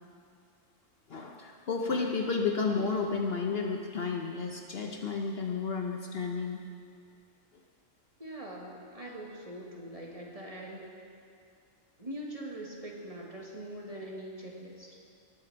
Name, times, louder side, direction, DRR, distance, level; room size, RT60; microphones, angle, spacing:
voice 1, 1.1-6.6, left 4 dB, 55° left, 2 dB, 0.9 m, -32 dB
voice 2, 8.2-10.9 12.0-15.0, right 1 dB, 30° right, -2 dB, 1.6 m, -42 dB
18.5 x 7.7 x 4.6 m, 2.3 s
omnidirectional pair, 1.3 m